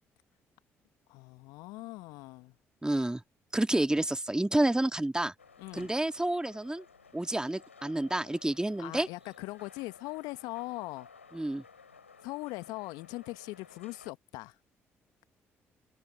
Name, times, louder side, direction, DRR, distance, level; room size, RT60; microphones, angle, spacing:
voice 1, 1.1-2.5 5.6-5.9 8.8-11.1 12.2-14.6, left 22 dB, 65° left, 1.2 m, -40 dB
voice 2, 2.8-3.2 3.5-5.3 5.7-6.8 7.1-9.1 11.3-11.6, right 1 dB, 10° right, 2.0 m, -29 dB
sound 1, 5.4-14.1, left 5 dB, 90° left, 3.0 m, -56 dB
figure-of-eight pair, 45°, 7 cm